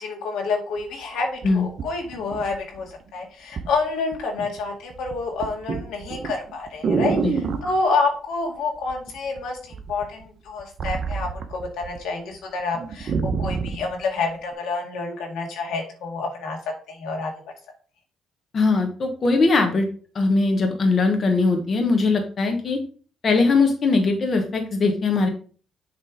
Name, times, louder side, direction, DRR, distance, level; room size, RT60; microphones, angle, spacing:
voice 1, 0.0-16.6 16.9-17.3, left 4 dB, 85° left, 1 dB, 1.8 m, -28 dB
sound 1, 0.8-0.9 1.4-2.9 3.6-3.8 4.1-4.6 4.9-7.8 8.9-9.4 9.7-12.0 12.3-12.4 12.7-13.9 14.5-14.6, right 5 dB, 55° right, 0.9 m, -27 dB
voice 2, 18.5-19.9 20.1-22.8 23.2-25.3, left 3 dB, 45° left, 4 dB, 1.1 m, -20 dB
7.0 x 3.3 x 4.7 m, 0.41 s
cardioid pair, 90°, 0 cm